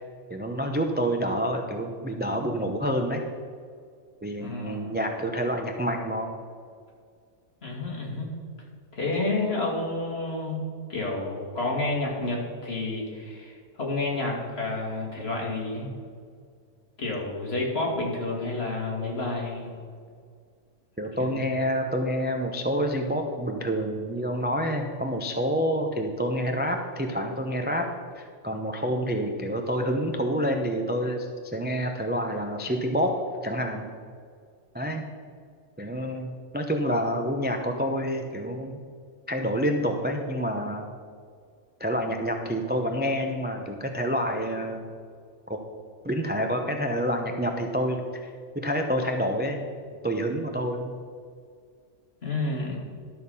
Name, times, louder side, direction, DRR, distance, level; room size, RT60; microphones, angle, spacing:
voice 1, 0.3-3.2 4.2-6.3 21.0-27.9 28.2-33.1 33.4-33.9 34.7-35.1 35.8-38.8 39.3-40.9 41.8-44.8 45.5-45.6 46.0-48.3 48.5-49.7 50.0-50.9, equal, 10° right, 3 dB, 0.5 m, -28 dB
voice 2, 4.4-4.9 7.6-8.3 8.9-15.9 17.0-19.7 21.2-21.4 52.2-52.8, left 2 dB, 50° left, -2 dB, 2.5 m, -30 dB
12.0 x 6.7 x 5.5 m, 2.1 s
omnidirectional pair, 1.4 m